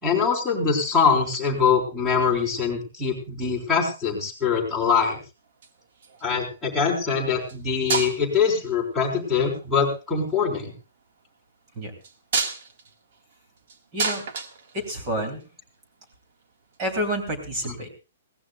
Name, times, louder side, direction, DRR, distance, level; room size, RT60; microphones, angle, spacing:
voice 1, 0.0-5.2 6.2-10.7 17.7-17.8, left 6 dB, ahead, -8 dB, 3.9 m, -23 dB
sound 1, 5.5-6.3 7.4-7.6 7.9-8.5 9.5-9.9 12.0-15.4 16.7-16.8, right 4 dB, 45° right, 1.7 m, -30 dB
voice 2, 13.9-14.3 14.7-15.4 16.8-17.9, equal, 20° right, 4 dB, 3.1 m, -29 dB
21.5 x 18.0 x 2.3 m, 0.31 s
hypercardioid pair, 175°, 0 cm